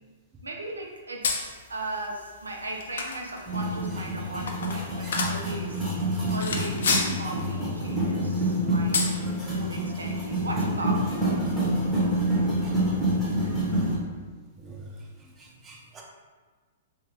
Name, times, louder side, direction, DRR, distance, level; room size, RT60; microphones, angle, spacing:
voice 1, 0.4-5.9 6.3-9.1 9.5-11.4, right 2 dB, 90° right, 0 dB, 0.4 m, -37 dB
sound 1, 1.2-13.9, left 4 dB, 70° left, 0.4 m, -35 dB
sound 2, 3.5-14.0, right 1 dB, 5° left, 1.0 m, -27 dB
voice 2, 15.4-16.0, right 4 dB, 20° right, -2 dB, 0.6 m, -46 dB
2.7 x 2.3 x 3.4 m, 1.4 s
hypercardioid pair, 115°, 0 cm